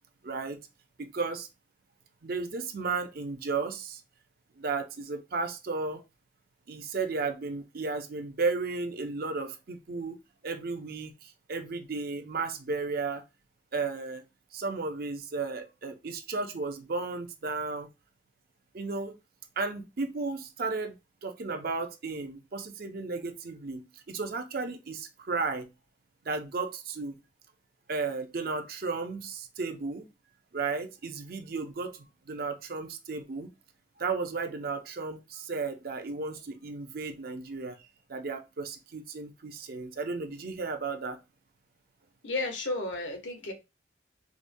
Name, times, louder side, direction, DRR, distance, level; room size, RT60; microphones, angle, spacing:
voice 1, 0.2-0.6 1.0-1.5 2.2-4.0 4.6-6.0 6.7-10.2 10.4-13.2 13.7-14.2 14.5-17.9 18.7-19.1 19.6-20.9 21.2-25.7 26.3-27.2 27.9-30.1 30.5-33.5 34.0-37.8 38.1-41.2, right 4 dB, 55° right, 0.6 m, -34 dB
voice 2, 42.2-43.5, left 2 dB, 85° left, 1.0 m, -32 dB
4.8 x 2.2 x 2.6 m
head